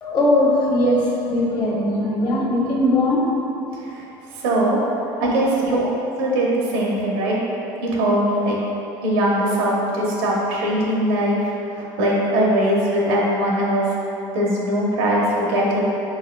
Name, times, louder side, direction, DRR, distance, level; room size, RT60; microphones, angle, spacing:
voice 1, 0.0-3.3 5.0-5.2 5.7-5.8, left 1 dB, 40° left, -5 dB, 1.0 m, -20 dB
voice 2, 4.3-4.8 5.2-5.8 6.2-7.4 7.8-8.6 9.0-13.9 14.3-15.8, right 1 dB, 90° right, -4 dB, 0.9 m, -21 dB
4.7 x 3.8 x 2.2 m, 2.9 s
supercardioid pair, 110°, 11 cm